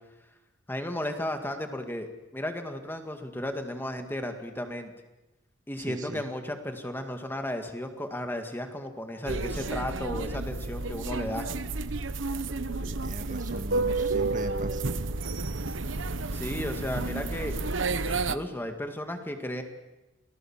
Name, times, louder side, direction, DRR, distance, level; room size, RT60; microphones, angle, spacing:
voice 1, 0.7-4.9 5.7-11.5 16.3-17.6 18.0-19.6, left 1 dB, 10° left, 5 dB, 2.1 m, -34 dB
voice 2, 5.8-6.3 12.8-14.9, right 1 dB, 40° right, 7 dB, 1.6 m, -39 dB
sound 1, 9.3-18.4, right 3 dB, 75° right, 1.1 m, -31 dB
29.0 x 19.5 x 7.4 m, 1.0 s
head